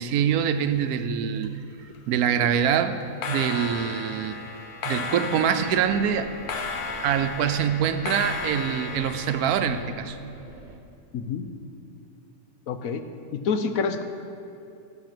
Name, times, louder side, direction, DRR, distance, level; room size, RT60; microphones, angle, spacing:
voice 1, 0.0-1.5 2.1-3.0 3.3-4.4 4.8-6.3 7.0-10.2, right 8 dB, 85° right, 10 dB, 1.1 m, -24 dB
sound 1, 0.6-1.5 1.7-2.1 3.0-9.8, left 4 dB, 90° left, 1.5 m, -34 dB
sound 2, 5.6-10.8, right 2 dB, 40° right, 0.9 m, -45 dB
voice 2, 11.1-11.5 12.7-13.0 13.3-14.0, left 5 dB, 70° left, 8 dB, 1.1 m, -27 dB
13.0 x 7.7 x 6.0 m, 2.6 s
omnidirectional pair, 1.6 m